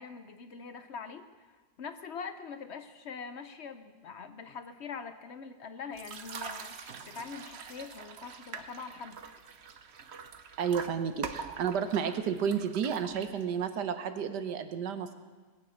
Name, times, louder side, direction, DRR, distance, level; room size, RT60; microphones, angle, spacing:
voice 1, 0.0-9.2, left 5 dB, 55° left, 10 dB, 0.8 m, -43 dB
sound 1, 5.9-13.7, right 6 dB, 50° right, 0.9 m, -44 dB
voice 2, 10.6-15.1, right 7 dB, 80° right, 10 dB, 1.6 m, -31 dB
21.0 x 9.0 x 6.4 m, 1.4 s
omnidirectional pair, 1.8 m